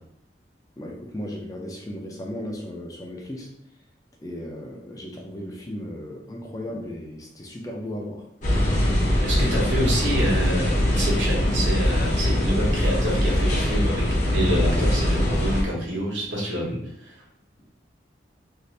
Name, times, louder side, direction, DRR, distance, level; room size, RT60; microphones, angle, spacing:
voice 1, 0.8-3.5 4.2-8.3 16.6-16.8 17.6-17.7, left 1 dB, 20° left, 0 dB, 0.4 m, -35 dB
sound 1, 8.4-15.6, left 1 dB, 40° left, 0.7 m, -22 dB
voice 2, 9.2-14.0 14.3-16.7, right 1 dB, 85° right, -4 dB, 1.1 m, -27 dB
2.7 x 2.5 x 3.1 m, 0.74 s
head